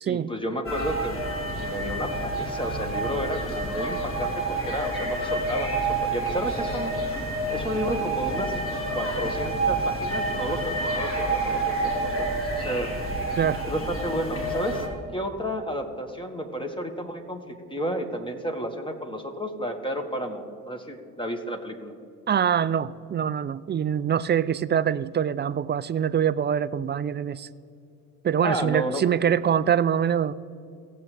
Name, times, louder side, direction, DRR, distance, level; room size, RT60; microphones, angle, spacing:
voice 1, 0.1-1.2 1.6-6.9 7.5-8.6 8.9-12.3 12.6-12.9 13.6-14.8 15.1-21.9 28.4-29.0, equal, 10° left, 5 dB, 1.7 m, -31 dB
sound 1, 0.6-14.9, right 2 dB, 30° left, 3.0 m, -28 dB
voice 2, 22.3-27.5 28.2-30.3, right 8 dB, 25° right, 16 dB, 0.4 m, -24 dB
18.5 x 7.7 x 3.4 m, 2.4 s
hypercardioid pair, 60°, 44 cm